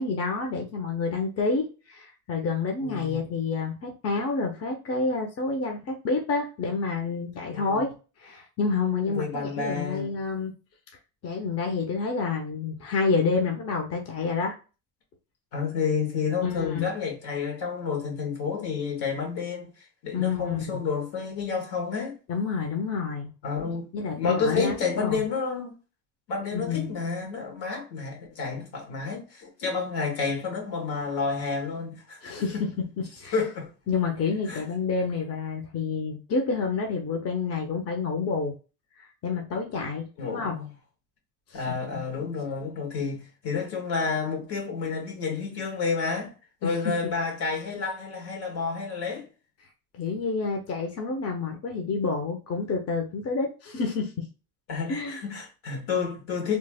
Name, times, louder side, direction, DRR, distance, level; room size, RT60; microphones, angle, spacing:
voice 1, 0.0-7.9 8.2-10.5 11.2-14.6 16.4-16.9 20.1-20.8 22.3-23.3 23.9-25.2 26.5-26.9 32.2-32.7 33.2-33.4 33.9-38.5 39.2-40.6 41.5-42.0 46.6-46.9 50.0-54.1 54.9-55.2, left 4 dB, 35° left, 0.8 m, -28 dB
voice 2, 2.8-3.2 7.5-7.8 9.1-10.1 15.5-19.7 20.0-22.2 23.4-25.7 26.3-32.6 33.3-33.7 34.5-34.6 40.2-40.7 41.5-46.3 46.6-49.3 54.7-56.6, left 5 dB, 70° left, 1.6 m, -30 dB
3.1 x 2.0 x 3.4 m
supercardioid pair, 90°, 40 cm